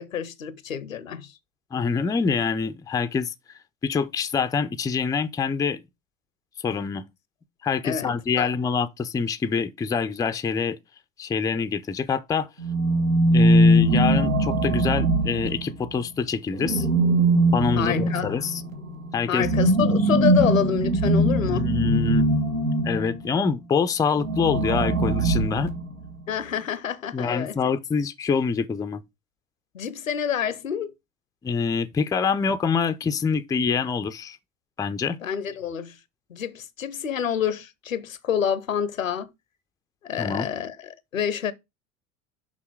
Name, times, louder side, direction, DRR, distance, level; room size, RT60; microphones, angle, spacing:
voice 1, 0.0-1.3 7.8-8.5 17.8-18.3 19.3-21.7 26.3-27.6 29.7-30.9 35.2-36.0 36.3-39.3 40.0-41.5, left 8 dB, 85° left, 0.8 m, -28 dB
voice 2, 1.7-3.3 3.8-5.8 6.6-7.0 7.6-10.8 11.2-12.5 13.3-16.9 17.5-18.6 19.1-19.5 21.5-22.2 22.8-25.7 27.1-29.0 31.4-34.4 34.8-35.2 40.2-40.5, left 5 dB, 10° left, 0.4 m, -25 dB
sound 1, 12.6-15.9 16.6-23.2 24.2-26.1, right 1 dB, 85° right, 1.6 m, -21 dB
6.3 x 5.5 x 4.6 m
figure-of-eight pair, 75°, 39 cm